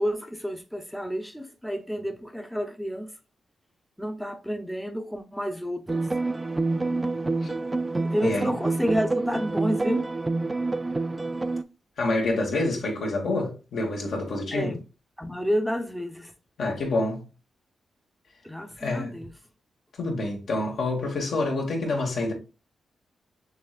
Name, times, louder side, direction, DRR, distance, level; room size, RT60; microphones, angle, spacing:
voice 1, 0.0-3.1 4.0-6.1 8.0-10.1 14.5-14.8 15.2-16.3 18.4-19.3, equal, ahead, 0.7 m, -30 dB
sound 1, 5.9-11.6, right 3 dB, 25° right, 0.4 m, -27 dB
voice 2, 12.0-14.8 16.6-17.2 18.8-19.2 20.0-22.3, left 2 dB, 70° left, 1.6 m, -27 dB
6.6 x 3.3 x 2.4 m
supercardioid pair, 50°, 0 cm